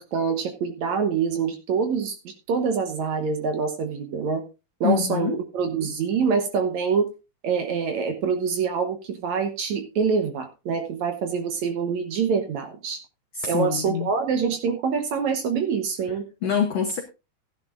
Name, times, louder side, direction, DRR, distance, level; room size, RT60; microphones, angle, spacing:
voice 1, 0.0-4.4 4.8-7.1 7.4-13.0 13.5-16.2, right 6 dB, 65° right, 2.0 m, -25 dB
voice 2, 4.8-5.4 13.3-14.1 16.4-17.0, left 7 dB, 75° left, 1.4 m, -25 dB
15.5 x 10.5 x 2.5 m
omnidirectional pair, 4.2 m